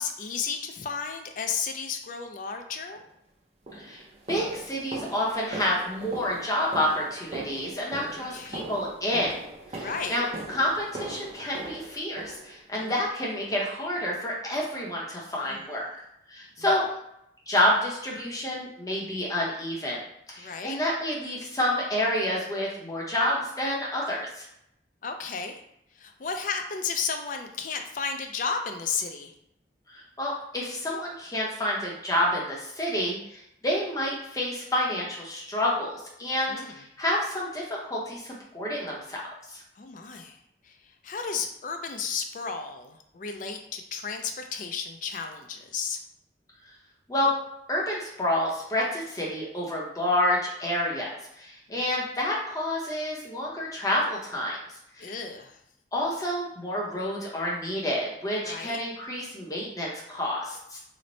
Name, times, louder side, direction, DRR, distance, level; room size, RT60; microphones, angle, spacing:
voice 1, 0.0-3.0 8.3-8.7 9.7-10.2 12.8-12.9 15.4-15.6 16.6-16.7 20.4-20.8 25.0-25.6 25.9-29.3 36.5-36.8 39.8-46.0 51.7-51.8 55.0-55.6 58.4-58.8, left 5 dB, 45° left, 5 dB, 0.4 m, -33 dB
sound 1, 3.0-3.1 3.7-12.9 13.4-13.7 14.0-14.2 14.6-14.8 15.2-15.3 15.8-15.9, right 2 dB, 35° right, 0.5 m, -41 dB
voice 2, 4.3-9.3 9.7-10.3 10.5-15.8 16.3-16.9 17.5-20.0 20.3-24.4 30.2-39.2 47.1-47.3 47.7-51.0 51.4-54.6 55.0-55.1 55.9-60.8, left 1 dB, 20° left, -4 dB, 0.7 m, -29 dB
3.1 x 2.0 x 3.9 m, 0.79 s
head